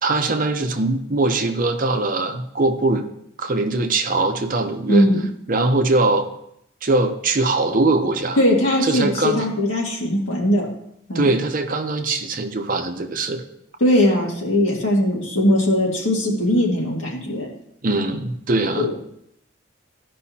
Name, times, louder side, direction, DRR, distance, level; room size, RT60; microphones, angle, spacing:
voice 1, 0.0-3.1 3.4-5.1 5.5-6.3 6.8-8.4 8.8-9.5 11.1-13.4 17.8-18.9, right 2 dB, 45° right, 5 dB, 0.8 m, -21 dB
voice 2, 4.9-5.2 8.4-10.7 11.1-11.3 13.8-17.5 18.7-18.9, left 1 dB, 85° left, -2 dB, 2.1 m, -19 dB
14.0 x 5.4 x 2.8 m, 0.74 s
head